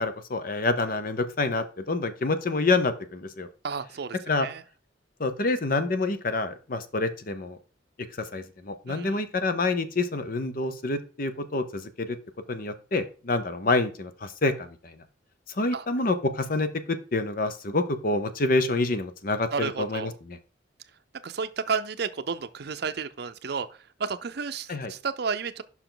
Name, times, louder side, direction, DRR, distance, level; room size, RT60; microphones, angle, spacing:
voice 1, 0.0-3.5 4.3-4.5 5.2-7.6 8.1-12.2 12.5-15.0 15.5-20.4 24.7-24.9, left 3 dB, 50° left, 0.8 m, -27 dB
voice 2, 3.6-4.1 4.4-4.6 8.9-9.2 15.7-15.8 19.5-20.1 21.2-23.7 24.0-25.6, right 5 dB, 60° right, 0.6 m, -31 dB
6.8 x 5.7 x 3.9 m
head